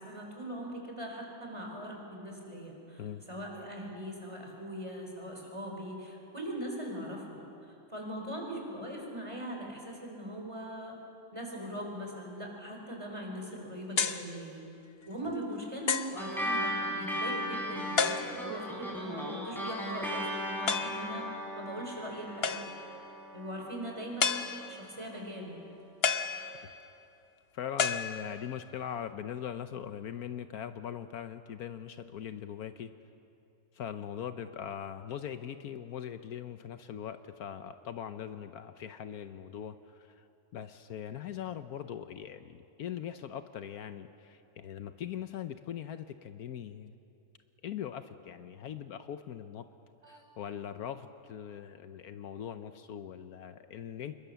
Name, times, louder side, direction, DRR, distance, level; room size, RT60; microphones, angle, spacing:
voice 1, 0.0-3.0 3.3-7.5 7.9-11.0 11.3-14.6 15.1-21.3 21.6-22.7 23.3-25.7 50.0-50.2, equal, 20° right, 0 dB, 4.4 m, -41 dB
sound 1, 14.0-14.3 15.0-15.1 15.9-16.2 18.0-18.6 20.7-21.1 22.4-22.9 24.2-24.9 26.0-26.9 27.8-28.6, left 6 dB, 45° left, 1.0 m, -31 dB
sound 2, 16.2-25.0, equal, ahead, 4.6 m, -37 dB
voice 2, 27.5-32.9 33.7-40.2 40.5-46.9 47.6-49.7 50.1-54.1, left 9 dB, 75° left, 10 dB, 1.2 m, -41 dB
27.0 x 22.0 x 6.9 m, 2.7 s
omnidirectional pair, 1.6 m